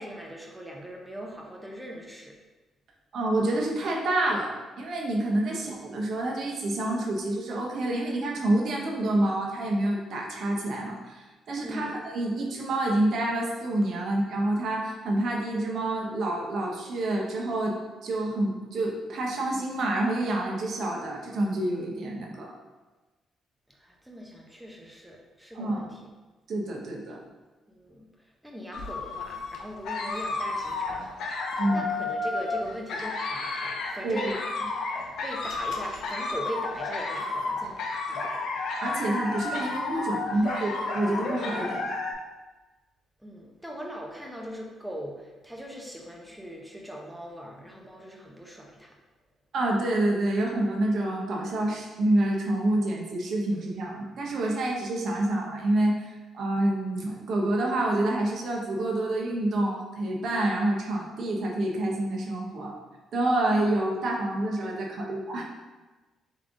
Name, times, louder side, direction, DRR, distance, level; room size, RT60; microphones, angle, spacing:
voice 1, 0.0-2.4 11.6-11.9 23.8-26.0 27.1-27.2 27.7-28.1 28.4-31.0 31.7-34.3 35.2-37.8 38.1-38.3 43.2-48.9, equal, 5° right, -1 dB, 0.8 m, -40 dB
voice 2, 3.1-17.8 18.0-22.5 25.5-25.8 26.5-27.2 31.6-31.9 34.0-34.3 38.8-41.9 49.5-62.7 63.1-65.4, right 1 dB, 60° right, -1 dB, 0.9 m, -28 dB
sound 1, 28.7-42.1, left 3 dB, 75° left, 0.6 m, -32 dB
3.6 x 3.3 x 3.8 m, 1.2 s
cardioid pair, 90°, 0 cm